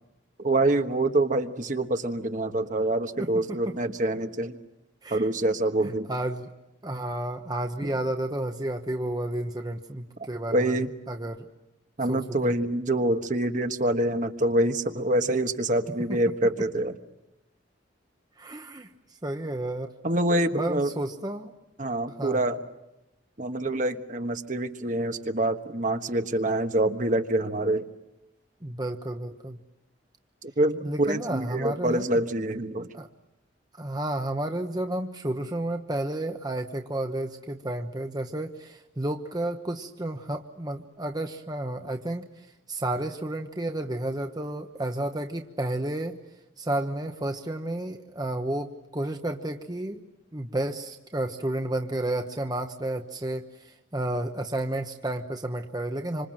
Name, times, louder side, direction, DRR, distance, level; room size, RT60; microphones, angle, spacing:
voice 1, 0.4-4.6 5.1-6.1 7.8-7.9 10.5-10.9 12.0-16.9 20.0-20.9 21.8-22.6 23.4-27.9 30.4-32.9, right 1 dB, 45° right, 7 dB, 1.3 m, -26 dB
voice 2, 3.2-3.8 5.0-5.3 5.8-6.5 6.8-10.8 11.1-11.5 12.1-12.5 16.1-16.2 18.4-18.9 19.2-19.9 20.5-21.5 22.2-22.4 28.6-29.6 30.8-32.1 32.9-33.1 33.8-42.3 42.7-46.2 46.6-50.1 50.3-56.3, right 1 dB, 20° right, 4 dB, 1.0 m, -31 dB
27.0 x 26.0 x 7.6 m, 0.94 s
head